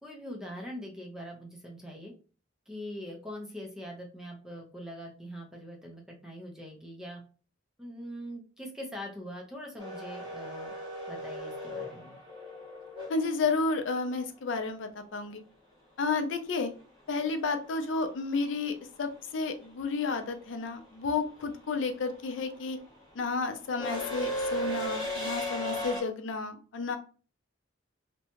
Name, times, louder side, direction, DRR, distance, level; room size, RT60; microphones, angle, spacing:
voice 1, 0.0-2.1 2.7-7.2 7.8-10.7 11.1-12.2, equal, 5° right, 0 dB, 0.5 m, -42 dB
sound 1, 9.8-13.8 16.3-16.4 17.6-18.0 18.2-26.0, equal, 25° right, 1.4 m, -37 dB
voice 2, 13.1-15.4 16.0-16.7 17.1-22.8 23.2-27.0, left 4 dB, 70° left, 7 dB, 0.4 m, -31 dB
2.7 x 2.2 x 2.8 m, 0.38 s
head